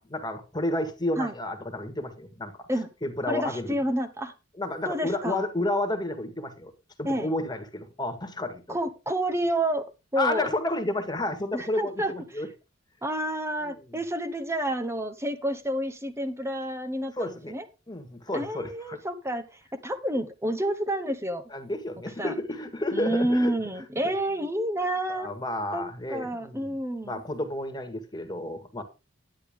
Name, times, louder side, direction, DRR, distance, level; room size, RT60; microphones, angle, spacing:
voice 1, 0.0-2.7 3.0-3.7 4.6-6.7 7.0-8.8 10.2-12.5 13.7-14.0 17.2-17.5 17.9-19.0 21.5-23.5 25.1-26.8 27.0-28.8, left 1 dB, 20° left, 1.7 m, -31 dB
voice 2, 3.3-4.3 4.9-5.4 7.0-7.3 8.7-9.9 10.1-10.5 11.5-12.4 13.0-17.6 18.3-21.4 22.2-22.3 22.9-25.3 25.7-25.8 26.1-27.2, right 1 dB, 15° right, 1.0 m, -29 dB
10.5 x 9.8 x 3.7 m
head